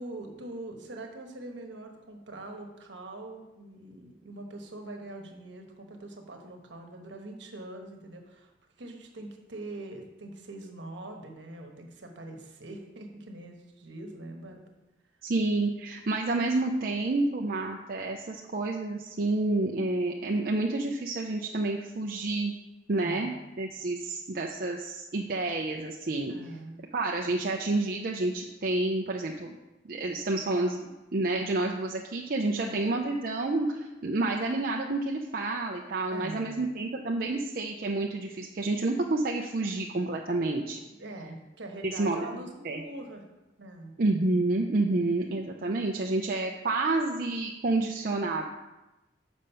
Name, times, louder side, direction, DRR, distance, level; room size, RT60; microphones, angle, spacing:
voice 1, 0.0-8.5 8.8-14.6 22.9-23.3 26.3-26.8 32.6-32.8 36.1-36.6 41.0-43.2 43.6-43.9, right 2 dB, 70° right, 3 dB, 1.2 m, -43 dB
voice 2, 15.2-22.5 22.9-26.3 26.9-29.5 29.8-40.8 41.8-42.2 42.6-42.8 44.0-48.5, right 2 dB, 50° right, 0 dB, 0.5 m, -29 dB
7.2 x 5.2 x 5.5 m, 1.0 s
head